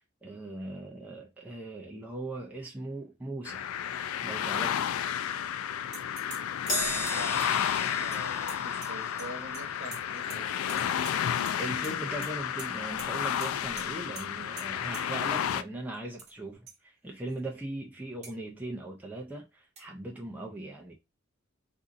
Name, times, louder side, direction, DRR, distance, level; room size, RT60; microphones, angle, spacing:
voice 1, 0.2-3.7 4.2-4.8 11.6-20.9, right 2 dB, 10° right, 0.5 m, -39 dB
sound 1, 3.5-15.6, left 9 dB, 85° left, 0.3 m, -31 dB
sound 2, 5.9-6.4 6.7-9.3 9.5-10.4 10.7-11.6 11.8-12.3 12.6-12.7 13.0-13.1 13.4-13.5 13.8-13.9 14.2-14.3 14.6-14.7 14.9-15.0 15.9-16.3 16.7-16.8 17.3-17.4 18.2-18.3 19.8-19.9, right 4 dB, 30° right, 1.0 m, -45 dB
Crash cymbal, 6.7-13.3 13.6-13.9 14.9-15.0, equal, 40° left, 1.7 m, -39 dB
voice 2, 7.1-11.2, right 1 dB, 70° right, 1.0 m, -45 dB
4.0 x 2.6 x 2.5 m
head